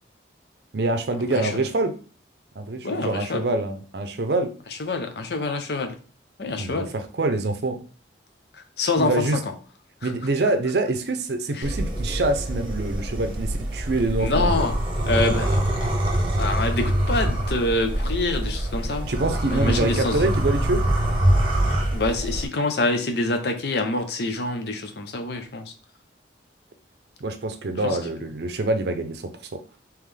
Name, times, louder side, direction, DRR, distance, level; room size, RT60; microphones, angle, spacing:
voice 1, 0.7-2.0 2.6-4.5 6.6-7.8 9.0-9.4 10.0-14.6 19.1-20.8 27.2-29.6, right 2 dB, 60° right, 0.6 m, -25 dB
voice 2, 2.8-3.5 4.8-6.0 6.4-6.9 8.8-9.2 10.0-10.1 11.5-11.7 14.2-14.8 15.0-15.9 16.4-19.1 19.5-20.2 21.9-25.7 27.8-28.0, left 2 dB, 60° left, 0.6 m, -26 dB
sound 1, 11.6-22.5, right 1 dB, 25° right, 0.9 m, -24 dB
3.7 x 3.0 x 3.3 m
head